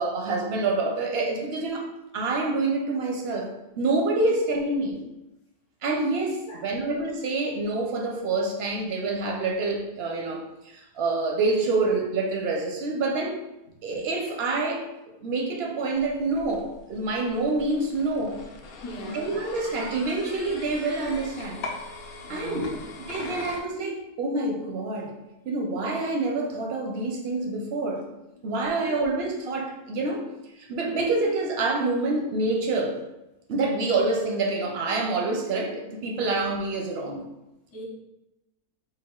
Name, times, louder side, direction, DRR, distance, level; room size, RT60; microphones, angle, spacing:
voice 1, 0.0-1.9 2.1-5.0 5.8-13.4 13.8-14.9 15.2-18.4 19.1-21.6 22.3-22.6 23.1-25.1 25.5-28.1 28.4-30.2 30.6-33.0 33.5-37.2, right 3 dB, 65° right, 1 dB, 0.6 m, -27 dB
voice 2, 6.4-6.9 18.8-19.3 22.2-22.8 28.9-29.1 37.7-37.8, left 1 dB, 60° left, -1 dB, 1.0 m, -38 dB
sound 1, 15.9-23.6, left 3 dB, 85° left, 0.5 m, -41 dB
4.1 x 2.3 x 3.6 m, 0.96 s
omnidirectional pair, 1.7 m